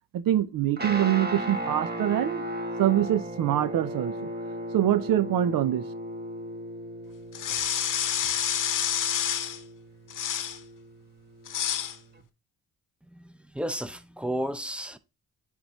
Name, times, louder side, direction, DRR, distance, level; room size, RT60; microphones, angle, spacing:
voice 1, 0.1-2.4 2.8-4.3 4.7-5.9, right 12 dB, 70° right, 0.6 m, -24 dB
Guitar, 0.8-12.2, equal, 25° right, 1.2 m, -36 dB
sound 1, 7.3-9.6 10.1-10.6 11.5-12.0, left 9 dB, 60° left, 0.9 m, -28 dB
voice 2, 13.5-15.0, right 1 dB, 5° right, 0.7 m, -32 dB
9.5 x 3.5 x 3.0 m
supercardioid pair, 65°, 36 cm